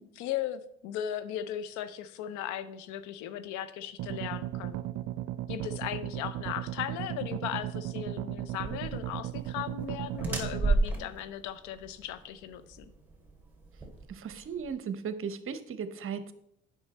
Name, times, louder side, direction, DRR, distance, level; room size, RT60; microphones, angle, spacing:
voice 1, 0.0-4.8 5.5-12.8, left 11 dB, 80° left, 13 dB, 0.6 m, -37 dB
sound 1, 4.0-10.7, right 13 dB, 75° right, 0.5 m, -36 dB
sound 2, 8.6-14.7, right 3 dB, 5° right, 2.5 m, -33 dB
voice 2, 14.1-16.3, right 6 dB, 45° right, 12 dB, 0.8 m, -36 dB
8.1 x 6.2 x 4.2 m, 0.76 s
supercardioid pair, 70°, 29 cm